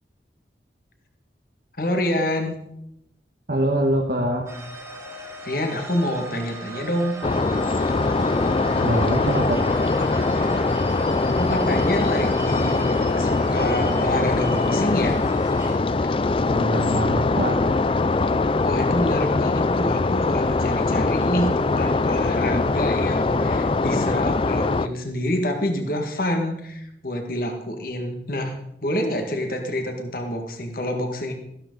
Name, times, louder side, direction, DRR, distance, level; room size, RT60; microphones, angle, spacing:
voice 1, 1.8-2.6 5.4-7.2 11.3-15.2 18.6-28.6 28.8-31.3, left 1 dB, 55° left, 4 dB, 1.9 m, -27 dB
voice 2, 3.5-4.4 8.7-9.6 16.5-17.7, right 1 dB, 60° right, -1 dB, 1.4 m, -24 dB
sound 1, 4.5-15.8, right 2 dB, 15° right, 2.4 m, -37 dB
sound 2, 7.2-24.9, left 3 dB, 30° left, 0.4 m, -22 dB
15.0 x 12.0 x 4.0 m, 0.78 s
head